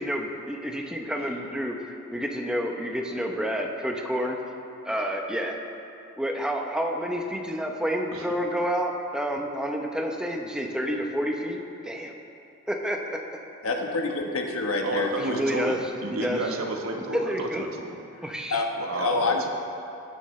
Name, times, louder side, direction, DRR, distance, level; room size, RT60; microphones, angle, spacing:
voice 1, 0.0-4.4 4.8-5.6 6.2-12.1 12.7-13.0 15.2-15.8 16.1-16.4 17.1-17.6 18.2-18.6, equal, 5° right, 1 dB, 0.8 m, -29 dB
voice 2, 13.6-15.4 18.5-18.7 18.9-19.4, left 3 dB, 85° left, 1 dB, 1.3 m, -27 dB
voice 3, 14.8-18.0 18.8-19.5, right 2 dB, 80° right, 2 dB, 1.2 m, -31 dB
18.0 x 9.4 x 3.2 m, 2.8 s
head